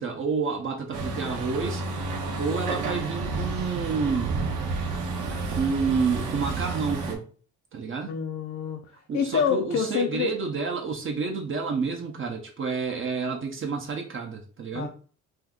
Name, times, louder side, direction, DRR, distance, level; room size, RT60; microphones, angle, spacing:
voice 1, 0.0-1.8 2.4-4.3 5.5-7.3 7.7-8.2 9.1-14.9, right 5 dB, 45° right, 0.7 m, -29 dB
Truck, 0.9-7.2, right 3 dB, 85° right, 0.7 m, -30 dB
voice 2, 8.1-8.8 9.1-10.3 14.7-14.9, left 6 dB, 60° left, 0.5 m, -26 dB
2.7 x 2.3 x 3.6 m
cardioid pair, 90°, 30 cm